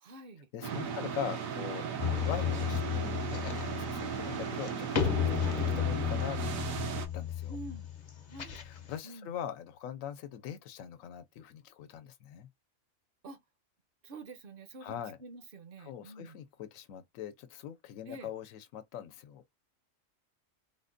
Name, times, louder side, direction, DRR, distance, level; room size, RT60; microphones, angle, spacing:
voice 1, 0.0-0.5 0.9-1.2 5.4-5.6 7.5-7.9 8.3-8.6 9.0-9.3 13.2-13.4 14.0-16.4 18.1-18.3, right 2 dB, 55° right, 0.7 m, -47 dB
voice 2, 0.5-5.2 5.6-6.4 7.1-7.6 8.5-12.5 14.8-15.2 15.8-19.4, left 9 dB, 80° left, 1.0 m, -42 dB
sound 1, 0.6-7.1, right 7 dB, 85° right, 1.1 m, -36 dB
sound 2, 2.0-9.0, left 9 dB, 50° left, 0.5 m, -33 dB
3.8 x 2.1 x 2.5 m
omnidirectional pair, 1.4 m